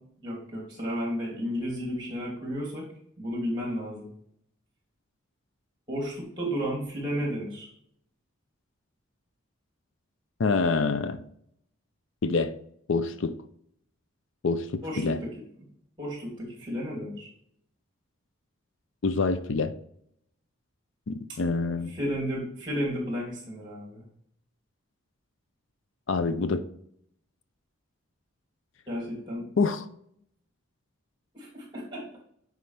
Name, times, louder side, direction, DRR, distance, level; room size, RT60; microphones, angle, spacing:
voice 1, 0.2-2.9 3.2-4.1 5.9-7.7 14.8-15.4 16.0-17.3 21.9-24.0 28.9-29.4 31.3-32.2, equal, 20° right, -3 dB, 2.8 m, -33 dB
voice 2, 10.4-11.2 12.2-12.5 12.9-13.4 14.4-15.2 19.0-19.7 21.1-21.9 26.1-26.6 29.6-29.8, left 4 dB, 65° left, 11 dB, 0.5 m, -26 dB
9.4 x 4.9 x 3.4 m, 0.68 s
head